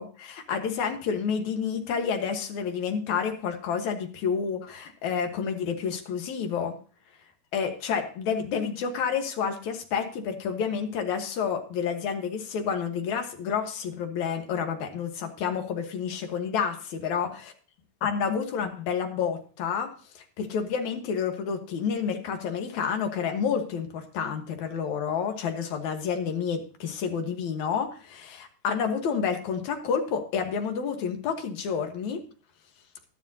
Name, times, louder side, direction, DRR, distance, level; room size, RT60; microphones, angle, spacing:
voice 1, 0.0-6.8 7.5-17.3 18.0-32.2, left 6 dB, 65° left, 6 dB, 2.6 m, -29 dB
12.0 x 12.0 x 2.8 m, 0.38 s
omnidirectional pair, 3.9 m